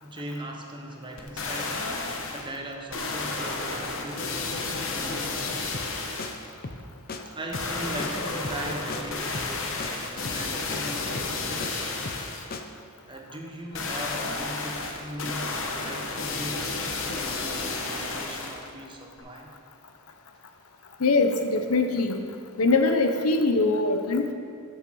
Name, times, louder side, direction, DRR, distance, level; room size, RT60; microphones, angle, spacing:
voice 1, 0.0-5.6 7.3-12.0 13.0-19.5, right 1 dB, 20° right, 1 dB, 1.0 m, -39 dB
sound 1, 1.2-2.5 2.9-6.5 7.5-12.5 13.7-18.7 19.2-19.3, left 3 dB, 65° left, 1.1 m, -32 dB
sound 2, 5.7-5.9 6.2-6.3 6.6-6.8 7.1-7.2 7.5-7.7 8.0-8.1 8.4-8.6 8.9-9.0 9.3-9.5 9.8-9.9 10.2-10.4 10.7-10.8 11.1-11.7 12.0-12.3 12.5-12.6, left 3 dB, 45° left, 0.7 m, -36 dB
voice 2, 21.0-22.2 22.6-24.3, left 3 dB, 80° left, 6 dB, 0.8 m, -22 dB
13.0 x 6.5 x 4.7 m, 2.3 s
head